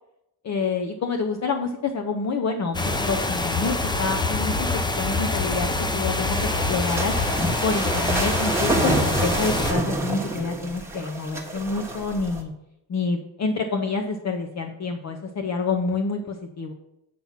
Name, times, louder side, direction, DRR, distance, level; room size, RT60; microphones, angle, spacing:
voice 1, 0.4-7.1 7.6-12.5 12.9-16.7, left 4 dB, 40° left, 4 dB, 0.7 m, -28 dB
sound 1, 2.7-9.7, left 2 dB, 10° left, 0.5 m, -25 dB
sound 2, 6.3-12.4, right 2 dB, 5° right, 1.2 m, -28 dB
7.7 x 5.8 x 5.7 m, 0.86 s
cardioid pair, 145°, 43 cm